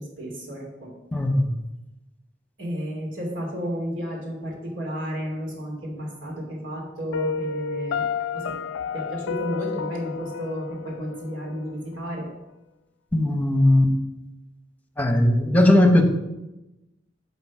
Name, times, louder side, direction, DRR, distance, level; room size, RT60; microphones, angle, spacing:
voice 1, 0.0-1.0 2.6-8.1 8.3-8.6 8.9-12.3, equal, 80° right, -1 dB, 3.0 m, -32 dB
voice 2, 1.1-1.5 13.1-13.9 15.0-16.0, left 1 dB, 10° left, 4 dB, 1.0 m, -18 dB
Piano, 7.1-12.1, left 6 dB, 75° left, 0.3 m, -31 dB
11.5 x 4.2 x 6.1 m, 0.98 s
head